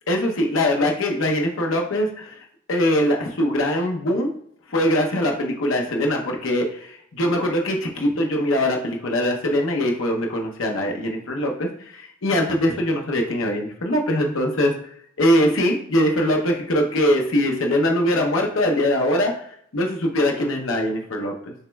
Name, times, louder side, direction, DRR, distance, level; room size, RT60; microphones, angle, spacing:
voice 1, 0.1-2.4 2.7-4.3 4.7-19.5 19.7-21.5, left 1 dB, 85° left, 1 dB, 0.7 m, -22 dB
6.5 x 3.0 x 2.2 m, 0.67 s
head